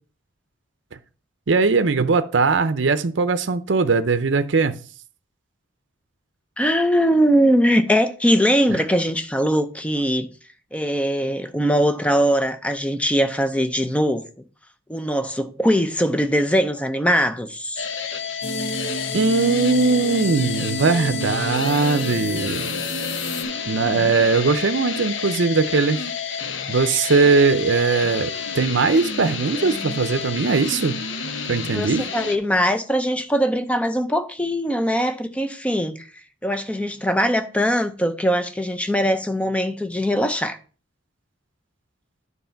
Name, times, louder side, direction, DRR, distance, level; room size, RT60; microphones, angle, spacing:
voice 1, 1.5-4.7 19.1-22.7 23.7-26.0 26.7-31.0 31.5-32.0, right 4 dB, 70° right, 0.6 m, -20 dB
voice 2, 6.6-10.3 10.7-14.3 14.9-17.9 24.0-24.3 31.7-36.1 36.4-40.6, equal, 5° left, 0.6 m, -21 dB
sound 1, 17.8-32.4, left 6 dB, 75° left, 0.9 m, -30 dB
sound 2, 18.4-23.4, equal, 45° left, 0.9 m, -30 dB
9.6 x 4.1 x 5.7 m
head